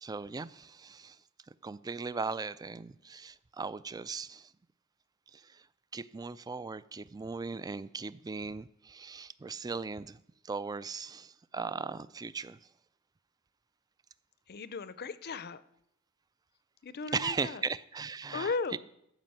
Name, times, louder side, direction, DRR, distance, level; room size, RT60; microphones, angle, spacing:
voice 1, 0.0-1.2 1.5-4.5 5.3-5.7 5.9-12.6 17.1-18.8, right 4 dB, 20° right, 0.3 m, -38 dB
voice 2, 14.5-15.6 16.8-17.6 18.3-18.8, left 4 dB, 50° left, 0.6 m, -36 dB
14.0 x 5.1 x 7.7 m
head